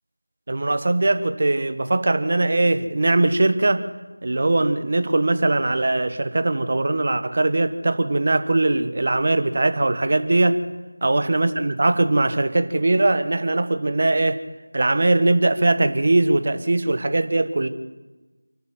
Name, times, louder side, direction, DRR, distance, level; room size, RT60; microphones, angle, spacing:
voice 1, 0.5-3.9 4.2-10.6 11.0-14.4 14.7-17.7, right 2 dB, 40° right, 10 dB, 1.3 m, -20 dB
28.0 x 12.0 x 7.9 m, 1.2 s
figure-of-eight pair, 175°, 0 cm